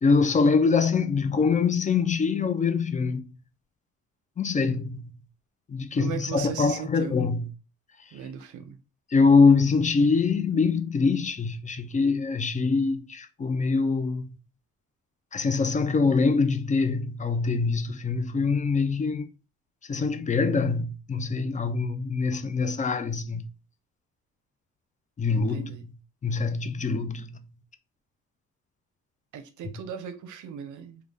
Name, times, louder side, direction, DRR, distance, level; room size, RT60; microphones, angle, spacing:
voice 1, 0.0-3.2 4.4-5.1 5.7-7.5 9.1-14.3 15.3-19.3 19.9-23.5 25.2-25.8 26.2-27.4, left 4 dB, 25° left, 0.5 m, -24 dB
voice 2, 6.0-7.2 8.1-8.8 25.4-25.8 29.3-31.0, right 8 dB, 75° right, 0.6 m, -37 dB
3.7 x 2.3 x 3.3 m
cardioid pair, 90°, 30 cm